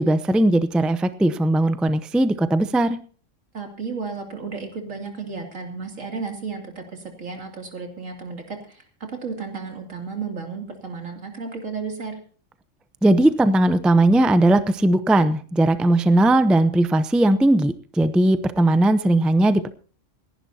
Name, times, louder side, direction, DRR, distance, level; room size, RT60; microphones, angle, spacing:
voice 1, 0.0-3.0 13.0-19.7, right 1 dB, ahead, 12 dB, 0.4 m, -18 dB
voice 2, 3.5-8.8 9.1-12.1, right 5 dB, 90° right, 3 dB, 3.1 m, -33 dB
28.0 x 11.0 x 2.8 m, 0.40 s
omnidirectional pair, 1.3 m